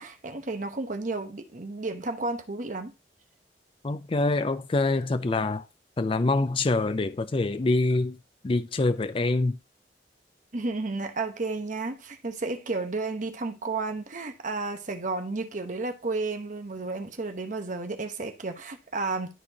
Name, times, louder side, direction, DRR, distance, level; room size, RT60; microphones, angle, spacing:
voice 1, 0.0-2.9 10.5-19.3, right 3 dB, 45° right, 1.0 m, -32 dB
voice 2, 3.8-5.6 6.0-8.2 8.4-9.6, left 2 dB, 30° left, 0.4 m, -25 dB
12.0 x 4.4 x 2.8 m
head